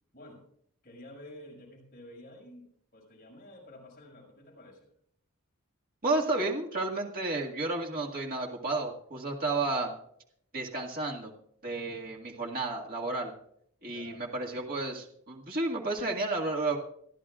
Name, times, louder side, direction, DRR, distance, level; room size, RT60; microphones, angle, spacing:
voice 1, 0.1-0.4 0.8-2.7 2.9-4.9 13.9-14.4, left 1 dB, 40° left, -2 dB, 5.8 m, -50 dB
voice 2, 6.0-9.9 10.5-11.3 11.6-13.3 13.8-16.8, right 2 dB, 40° right, -1 dB, 2.0 m, -32 dB
27.0 x 11.0 x 2.5 m, 0.68 s
head